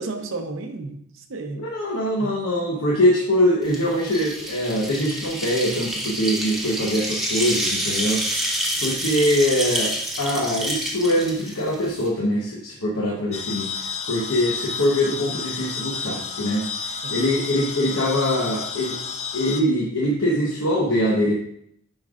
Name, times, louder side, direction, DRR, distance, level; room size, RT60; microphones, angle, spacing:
voice 1, 0.0-1.7 2.2-2.4 17.0-17.2, right 3 dB, 60° right, 4 dB, 0.7 m, -33 dB
voice 2, 1.5-8.5 8.8-13.7 14.1-19.0 19.3-21.3, equal, 80° left, -3 dB, 1.0 m, -23 dB
sound 1, 3.7-12.1, right 1 dB, ahead, 1.0 m, -28 dB
sound 2, 13.3-19.6, left 5 dB, 30° left, 0.5 m, -31 dB
9.6 x 5.3 x 2.4 m, 0.70 s
head